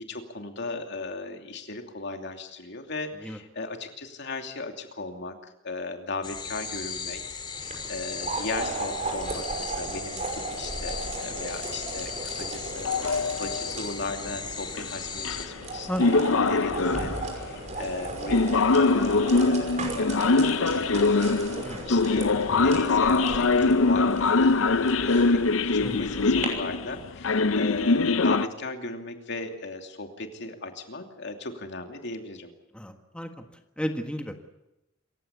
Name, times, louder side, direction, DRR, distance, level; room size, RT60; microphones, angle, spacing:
voice 1, 0.0-16.1 16.4-32.5, left 3 dB, 60° left, 5 dB, 2.8 m, -37 dB
sound 1, 6.2-15.5, left 5 dB, 25° left, 2.8 m, -37 dB
sound 2, 7.5-26.5, right 3 dB, 40° right, 5.8 m, -36 dB
sound 3, 12.8-13.8 14.8-14.9 15.2-15.6 16.0-17.3 18.3-28.5, left 3 dB, 80° left, 0.7 m, -23 dB
voice 2, 15.9-16.3 21.6-21.8 25.8-26.1 32.7-33.4 33.8-34.3, equal, 5° left, 5 dB, 1.5 m, -33 dB
27.5 x 16.0 x 8.3 m, 0.93 s
head